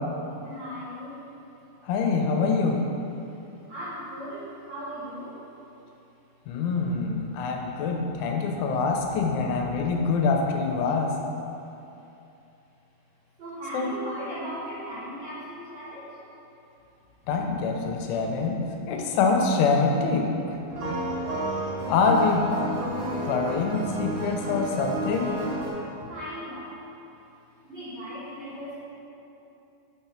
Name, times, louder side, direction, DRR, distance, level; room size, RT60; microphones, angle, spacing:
voice 1, 0.4-1.2 3.7-5.4 13.4-16.0 26.1-26.7 27.6-28.7, equal, 85° right, -11 dB, 1.5 m, -37 dB
voice 2, 1.8-2.8 6.5-11.1 13.7-13.9 17.3-18.6 18.9-20.6 21.9-22.5 23.3-25.3, left 4 dB, 80° left, 2 dB, 3.2 m, -25 dB
sound 1, 20.7-25.7, right 1 dB, 40° right, 1.7 m, -31 dB
7.2 x 5.9 x 5.7 m, 2.8 s
omnidirectional pair, 5.5 m